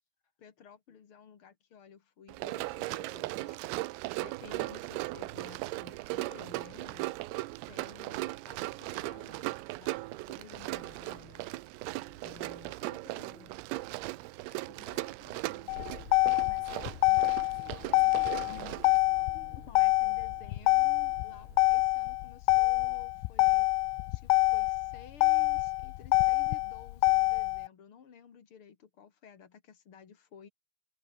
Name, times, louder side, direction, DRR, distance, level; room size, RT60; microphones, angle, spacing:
voice 1, 0.4-3.6 4.2-7.1 7.7-11.5 12.2-13.5 14.5-14.6 14.8-15.8 19.7-23.7 24.1-30.5, left 7 dB, 70° left, 1.2 m, -54 dB
Run, 2.3-19.0, right 20 dB, 85° right, 3.5 m, -38 dB
sound 1, 4.2-21.9, right 12 dB, 70° right, 4.0 m, -56 dB
voice 2, 12.0-12.4 13.1-13.6 14.5-15.0 16.3-19.7, left 5 dB, 30° left, 2.7 m, -55 dB
Motor vehicle (road), 15.7-27.7, left 25 dB, 85° left, 2.8 m, -26 dB
omnidirectional pair, 6.0 m